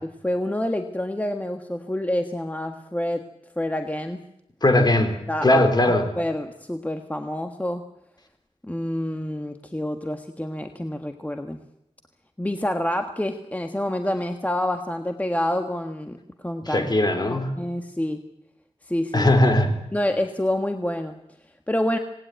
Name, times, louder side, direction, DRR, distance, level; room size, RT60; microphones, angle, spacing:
voice 1, 0.2-3.2 3.6-4.2 5.3-5.7 6.1-7.8 8.6-11.6 12.4-16.9 17.3-18.2 18.9-19.3 19.9-21.2 21.7-22.0, left 1 dB, 15° left, 5 dB, 1.4 m, -27 dB
voice 2, 4.6-5.2 5.4-6.1 16.7-17.5 19.1-19.7, left 1 dB, 35° left, 6 dB, 3.8 m, -19 dB
26.5 x 19.0 x 9.2 m, 0.84 s
wide cardioid pair, 100°, 12 cm